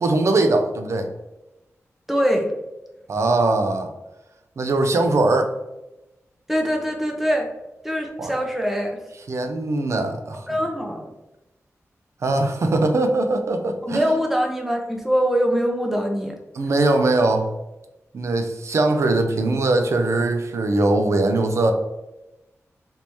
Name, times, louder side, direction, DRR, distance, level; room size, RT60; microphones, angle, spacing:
voice 1, 0.0-1.1 3.1-3.9 4.6-5.5 8.2-8.3 9.3-10.4 12.2-14.2 16.5-17.5 18.1-21.7, right 2 dB, 60° right, 5 dB, 0.4 m, -21 dB
voice 2, 2.1-2.5 6.5-7.5 7.8-9.0 10.5-11.1 13.8-16.4, equal, 5° right, 1 dB, 0.6 m, -23 dB
3.4 x 2.7 x 3.0 m, 0.97 s
wide cardioid pair, 125°, 5 cm